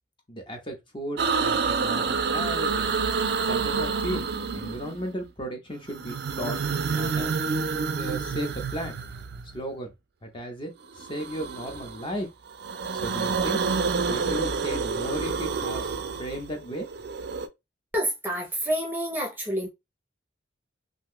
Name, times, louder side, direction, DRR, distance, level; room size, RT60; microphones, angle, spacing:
voice 1, 0.3-2.9 3.5-7.6 7.9-9.0 9.5-9.9 10.2-12.3 12.9-13.6 14.1-15.9 16.2-16.9, equal, 25° left, 0.7 m, -35 dB
sound 1, 1.2-5.1 5.9-9.6 11.0-12.1 12.5-17.5, right 5 dB, 55° right, 0.4 m, -28 dB
voice 2, 17.9-19.7, equal, 10° right, 0.6 m, -28 dB
2.6 x 2.2 x 3.5 m
head